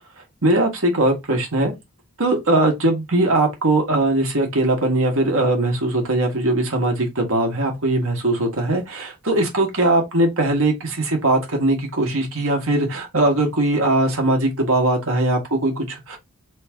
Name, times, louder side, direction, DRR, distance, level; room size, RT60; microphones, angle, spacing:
voice 1, 0.4-1.7 2.2-16.2, right 2 dB, 65° right, 1.9 m, -20 dB
3.9 x 3.2 x 3.7 m
head